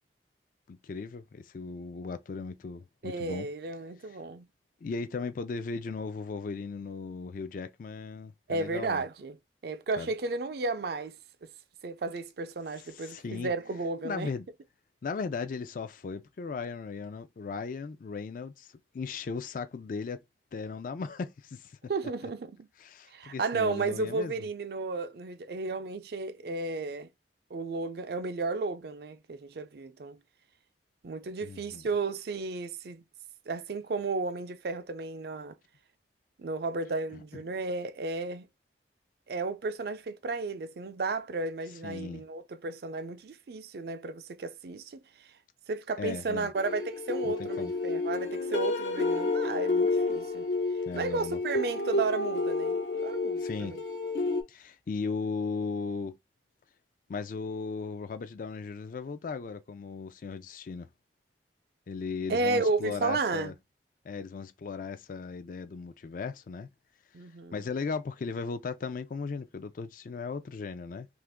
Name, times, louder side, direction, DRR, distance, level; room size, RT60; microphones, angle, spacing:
voice 1, 0.7-3.5 4.8-9.0 10.0-10.1 12.9-13.5 14.0-14.5 15.0-20.2 20.5-21.8 22.8-24.3 31.4-31.9 37.1-37.4 41.8-42.2 46.0-46.5 47.2-47.7 50.9-51.4 53.4-53.8 54.5-56.2 57.1-60.9 61.9-63.5 64.0-66.7 67.5-71.1, left 4 dB, 50° left, 0.4 m, -37 dB
voice 2, 3.0-4.5 8.5-9.4 9.6-11.2 11.8-14.3 21.9-22.7 23.1-27.1 27.5-30.2 31.0-33.0 33.5-35.6 36.4-38.5 39.3-45.3 45.7-50.5 50.9-53.8 62.3-63.5 67.1-67.7, right 3 dB, 60° right, 0.4 m, -33 dB
sound 1, 46.6-54.4, left 2 dB, 75° left, 0.7 m, -30 dB
2.9 x 2.5 x 3.4 m
head